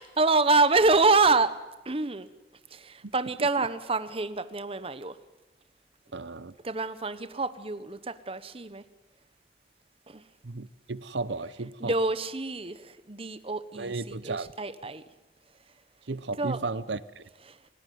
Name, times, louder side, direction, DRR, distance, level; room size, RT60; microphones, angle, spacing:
voice 1, 0.0-1.6 1.8-2.3 2.7-5.2 6.6-8.8 10.1-10.2 11.8-15.0 16.4-16.6 17.5-17.7, right 3 dB, 30° right, 12 dB, 1.1 m, -26 dB
voice 2, 6.1-6.5 10.4-11.9 13.7-14.5 16.1-17.3, right 3 dB, 85° right, 16 dB, 0.9 m, -34 dB
30.0 x 17.5 x 9.4 m, 1.1 s
head